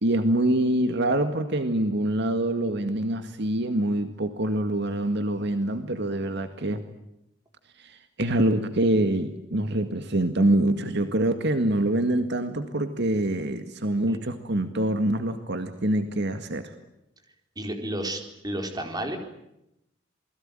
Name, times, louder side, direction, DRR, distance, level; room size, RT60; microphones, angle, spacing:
voice 1, 0.0-6.8 7.8-16.7, right 1 dB, 60° right, 8 dB, 2.0 m, -25 dB
voice 2, 17.6-19.2, right 1 dB, 20° right, 4 dB, 4.4 m, -32 dB
28.0 x 21.0 x 9.1 m, 0.84 s
head